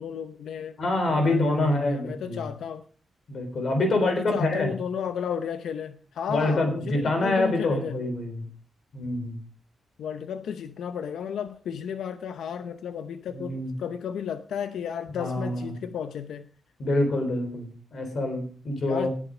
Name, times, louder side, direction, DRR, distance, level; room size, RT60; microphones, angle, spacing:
voice 1, 0.0-0.8 1.1-2.8 4.0-8.0 10.0-16.5 18.9-19.1, left 8 dB, 75° left, 0.7 m, -33 dB
voice 2, 0.8-2.4 3.3-4.7 6.3-8.4 8.9-9.4 13.3-13.7 15.1-15.7 16.8-19.1, left 2 dB, 45° left, 3.7 m, -26 dB
19.0 x 7.5 x 5.0 m
wide cardioid pair, 175°, 0 cm